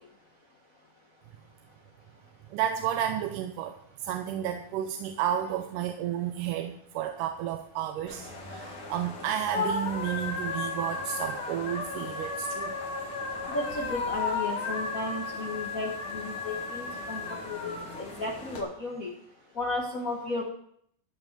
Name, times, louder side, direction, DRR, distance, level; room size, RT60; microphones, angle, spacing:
voice 1, 2.5-12.7, right 10 dB, 80° right, 6 dB, 2.3 m, -32 dB
sound 1, 8.1-18.6, left 4 dB, 45° left, 2.5 m, -34 dB
voice 2, 13.5-17.2 17.5-17.7 18.0-19.1 19.5-20.4, left 2 dB, 65° left, -1 dB, 0.8 m, -34 dB
13.5 x 5.6 x 7.3 m, 0.68 s
omnidirectional pair, 3.7 m